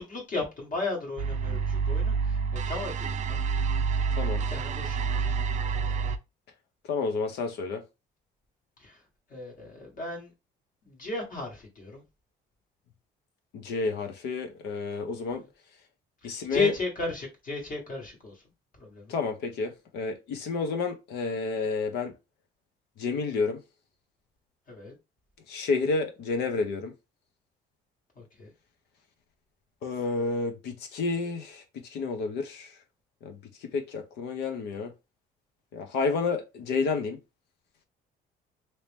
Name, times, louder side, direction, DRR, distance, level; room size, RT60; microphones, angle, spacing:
voice 1, 0.0-3.4 3.8-4.0 4.3-5.3 8.8-9.0 9.3-10.3 10.8-12.0 16.2-18.4 18.8-19.1 24.7-24.9 28.2-28.5, left 3 dB, 55° left, 1.5 m, -35 dB
sound 1, 1.2-6.2, right 5 dB, 45° right, 0.5 m, -28 dB
voice 2, 6.9-7.8 13.5-15.4 16.2-16.7 19.1-22.1 23.0-23.6 25.5-26.9 29.8-32.8 33.2-33.4 33.7-34.9 35.7-37.2, left 4 dB, 80° left, 0.9 m, -30 dB
3.1 x 2.9 x 3.4 m
cardioid pair, 110°, 17 cm